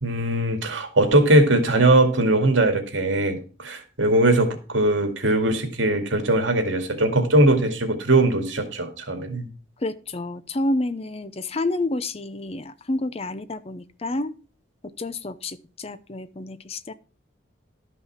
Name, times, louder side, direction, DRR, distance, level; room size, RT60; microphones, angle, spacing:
voice 1, 0.0-9.5, right 1 dB, 75° right, 6 dB, 2.2 m, -20 dB
voice 2, 9.8-14.4 15.0-16.9, left 2 dB, 30° left, 13 dB, 0.6 m, -29 dB
12.0 x 5.7 x 5.7 m, 0.36 s
head